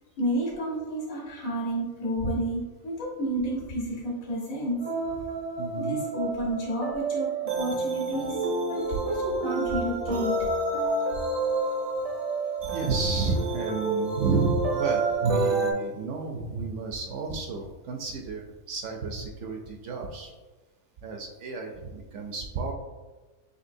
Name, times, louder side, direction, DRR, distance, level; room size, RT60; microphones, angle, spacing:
voice 1, 0.2-4.8 5.8-10.5, right 1 dB, 70° left, -6 dB, 1.7 m, -31 dB
sound 1, 4.8-15.7, right 3 dB, 50° right, 0.4 m, -29 dB
voice 2, 5.6-6.0 12.6-20.3 21.0-22.7, right 3 dB, 65° right, 2 dB, 0.8 m, -31 dB
5.4 x 3.2 x 2.6 m, 1.2 s
omnidirectional pair, 1.5 m